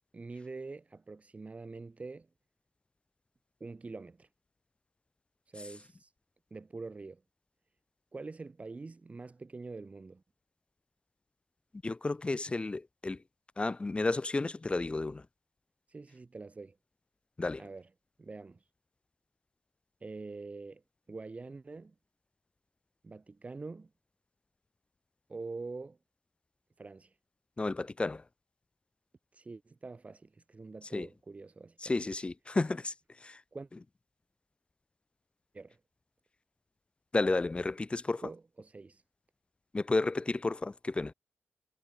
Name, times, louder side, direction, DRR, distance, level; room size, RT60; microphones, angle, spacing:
voice 1, 0.1-2.3 3.6-4.3 5.5-6.1 6.5-7.2 8.1-10.2 15.9-16.8 17.6-17.9 18.2-18.6 20.0-20.8 21.1-21.9 23.0-23.9 25.3-26.0 26.8-27.1 29.3-32.1 33.5-33.7 35.5-35.8 38.2-39.0, right 3 dB, 35° right, 2.2 m, -45 dB
voice 2, 11.8-13.2 13.6-15.2 17.4-17.6 27.6-28.2 30.9-31.1 31.8-32.9 33.2-33.4 37.1-38.2 39.7-41.1, left 3 dB, 25° left, 1.0 m, -32 dB
cardioid pair, 85°, 4 cm